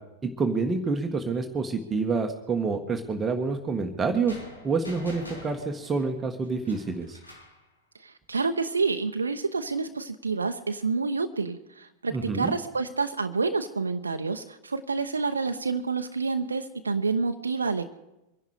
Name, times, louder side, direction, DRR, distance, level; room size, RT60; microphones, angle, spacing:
voice 1, 0.2-4.4 4.6-7.2 12.1-12.5, right 4 dB, 15° right, 3 dB, 1.6 m, -28 dB
sound 1, 4.3-7.6, equal, 80° left, 4.0 m, -45 dB
voice 2, 8.0-17.9, right 4 dB, 75° right, 6 dB, 0.9 m, -28 dB
24.5 x 11.0 x 5.0 m, 0.93 s
figure-of-eight pair, 90°, 0 cm